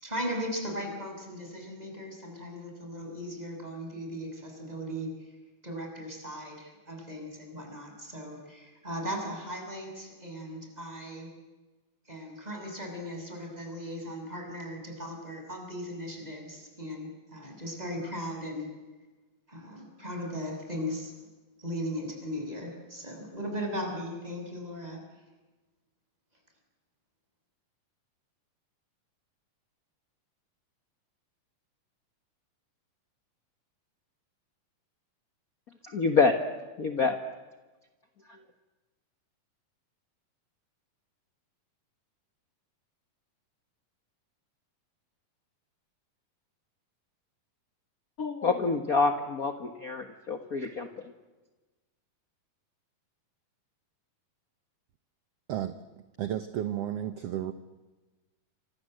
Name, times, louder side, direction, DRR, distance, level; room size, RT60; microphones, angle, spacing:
voice 1, 0.0-5.3 5.6-11.3 12.0-18.7 19.5-21.2 21.6-25.0, equal, 10° right, 2 dB, 6.8 m, -37 dB
voice 2, 35.8-36.3 36.8-37.2 38.3-38.4 48.2-50.9, left 4 dB, 55° left, 7 dB, 1.0 m, -27 dB
voice 3, 56.2-57.5, right 11 dB, 65° right, 11 dB, 1.6 m, -32 dB
28.5 x 26.5 x 7.9 m, 1.2 s
omnidirectional pair, 3.9 m